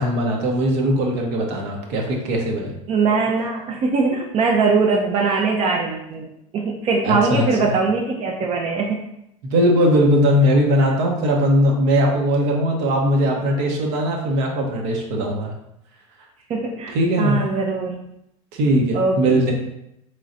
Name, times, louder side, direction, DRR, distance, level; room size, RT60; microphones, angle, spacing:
voice 1, 0.0-2.7 7.0-7.7 9.4-15.5 16.9-17.4 18.5-19.5, equal, 65° right, 1 dB, 0.9 m, -19 dB
voice 2, 2.9-6.3 6.5-9.0 16.5-18.0 18.9-19.4, right 4 dB, 40° right, 0 dB, 0.5 m, -21 dB
3.8 x 3.2 x 2.6 m, 0.81 s
supercardioid pair, 100°, 17 cm